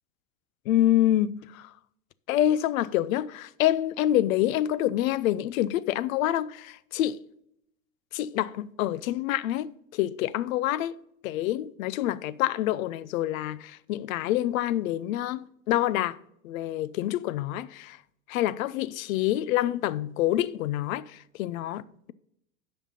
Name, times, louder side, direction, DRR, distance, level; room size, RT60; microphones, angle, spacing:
voice 1, 0.7-1.7 2.3-7.2 8.1-10.9 11.2-16.2 16.4-18.0 18.3-22.1, left 13 dB, 70° left, 0.6 m, -27 dB
10.0 x 5.7 x 5.4 m
hypercardioid pair, 110°, 43 cm